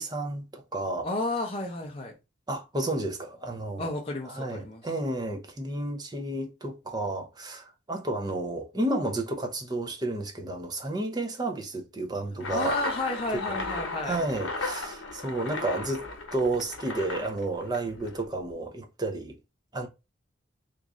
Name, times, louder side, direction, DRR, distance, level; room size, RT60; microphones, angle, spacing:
voice 1, 0.0-1.1 2.5-3.9 4.3-12.7 14.0-16.1 16.3-19.4 19.7-19.9, right 2 dB, 20° right, 0.5 m, -31 dB
voice 2, 1.0-2.1 3.8-4.8 12.5-14.2, left 2 dB, 30° left, 0.5 m, -32 dB
sound 1, 12.4-18.2, left 3 dB, 75° left, 0.9 m, -35 dB
3.0 x 2.4 x 3.6 m
head